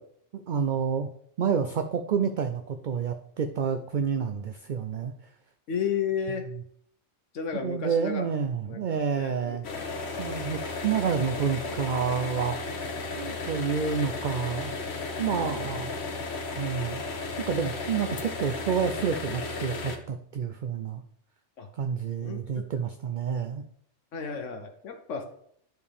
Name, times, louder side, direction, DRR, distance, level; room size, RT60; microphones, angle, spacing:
voice 1, 0.3-1.1 1.4-5.1 6.3-6.6 7.5-9.7 10.2-12.6 13.2-14.7 15.2-15.9 16.6-17.0 17.4-21.0 21.7-23.6, right 7 dB, 55° right, 8 dB, 0.5 m, -29 dB
voice 2, 5.7-6.5 7.3-8.2 8.7-9.9 15.3-15.8 21.6-21.7 22.2-22.4 24.1-25.2, left 6 dB, 80° left, 5 dB, 1.2 m, -33 dB
sound 1, 9.6-20.0, left 3 dB, 60° left, 1.1 m, -34 dB
11.0 x 4.6 x 3.4 m, 0.66 s
omnidirectional pair, 1.2 m